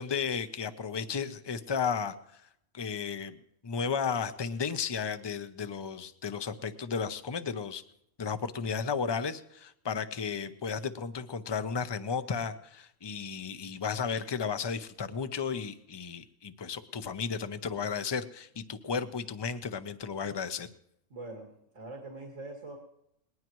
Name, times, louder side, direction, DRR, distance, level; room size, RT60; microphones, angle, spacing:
voice 1, 0.0-2.4 2.7-3.4 3.6-7.8 8.2-20.7, left 6 dB, 25° left, 11 dB, 0.6 m, -34 dB
voice 2, 21.1-22.8, right 2 dB, 80° right, 0 dB, 2.4 m, -43 dB
20.0 x 19.0 x 3.1 m, 0.77 s
omnidirectional pair, 1.3 m